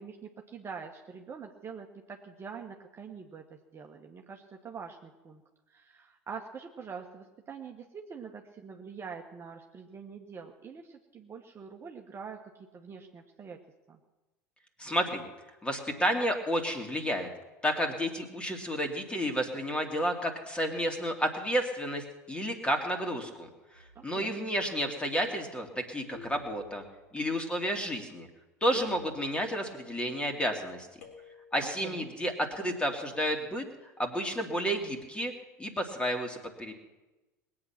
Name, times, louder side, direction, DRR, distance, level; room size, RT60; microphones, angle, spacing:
voice 1, 0.0-5.4 5.7-13.6 13.9-14.0 23.9-24.4 31.6-32.1, right 6 dB, 30° right, 1 dB, 1.4 m, -45 dB
voice 2, 14.8-15.3 15.6-17.3 17.6-23.5 23.7-26.8 27.1-28.3 28.6-30.9 31.5-35.3 35.6-36.7, equal, 10° left, 4 dB, 2.6 m, -31 dB
sound 1, 23.7-24.3 26.1-27.1 28.7-29.7 31.0-31.7, left 3 dB, 75° left, 3.8 m, -51 dB
21.0 x 8.7 x 6.0 m, 1.1 s
figure-of-eight pair, 75°, 9 cm